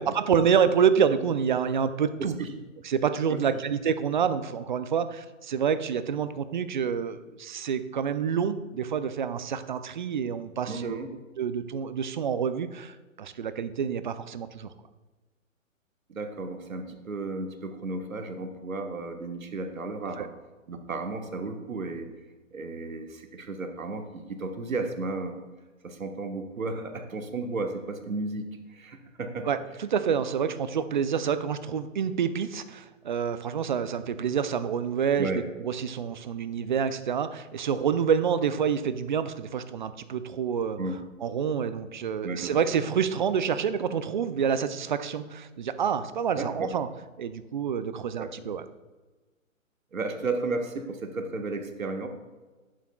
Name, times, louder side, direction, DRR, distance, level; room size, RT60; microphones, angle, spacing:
voice 1, 0.0-2.3 2.8-11.0 11.4-14.7 20.2-20.3 29.5-35.3 35.6-40.8 41.2-46.9 47.2-48.6, right 7 dB, 40° right, 12 dB, 0.4 m, -27 dB
voice 2, 2.2-2.5 3.3-3.4 10.7-11.1 16.1-20.3 20.7-22.1 22.5-25.4 25.8-29.5 35.2-35.4 40.8-41.0 42.2-42.6 46.3-46.7 48.2-48.3 49.9-52.1, right 3 dB, 80° right, 5 dB, 1.3 m, -33 dB
11.0 x 8.7 x 2.3 m, 1.3 s
figure-of-eight pair, 130°, 40 cm